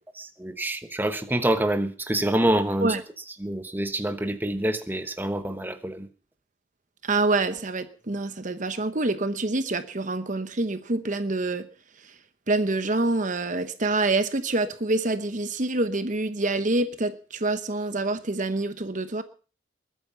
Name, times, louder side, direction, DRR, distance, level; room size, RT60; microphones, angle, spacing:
voice 1, 0.4-3.0 3.4-6.1, right 1 dB, 10° right, 8 dB, 1.1 m, -26 dB
voice 2, 7.0-11.7 12.0-12.2 12.5-19.2, right 2 dB, 40° right, 11 dB, 0.9 m, -26 dB
21.0 x 9.3 x 5.8 m, 0.38 s
head